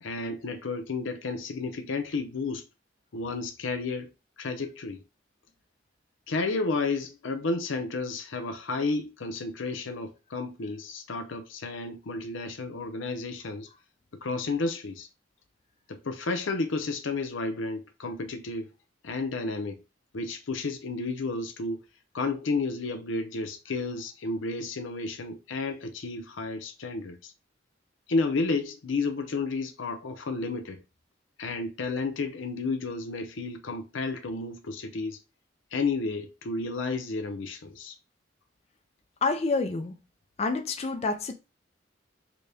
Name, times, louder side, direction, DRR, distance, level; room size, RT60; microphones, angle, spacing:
voice 1, 0.0-2.6 3.1-4.1 4.4-5.0 6.3-13.7 14.2-15.1 15.9-18.7 19.0-19.8 20.1-21.8 22.1-27.3 28.1-30.8 31.4-35.2 35.7-37.9, left 3 dB, 90° left, 0.6 m, -32 dB
voice 2, 39.2-39.9 40.4-41.3, left 3 dB, 35° left, 0.4 m, -28 dB
4.0 x 2.2 x 3.4 m
head